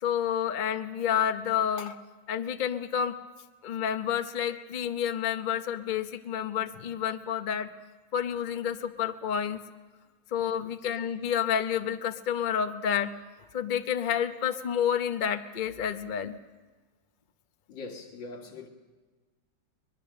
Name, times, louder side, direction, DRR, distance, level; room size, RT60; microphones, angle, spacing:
voice 1, 0.0-2.0 2.3-3.1 3.6-7.7 8.1-9.6 10.3-13.1 13.5-16.4, left 8 dB, 85° left, 0.4 m, -29 dB
voice 2, 17.7-18.7, left 3 dB, 65° left, 2.6 m, -42 dB
23.0 x 21.5 x 6.5 m
omnidirectional pair, 2.2 m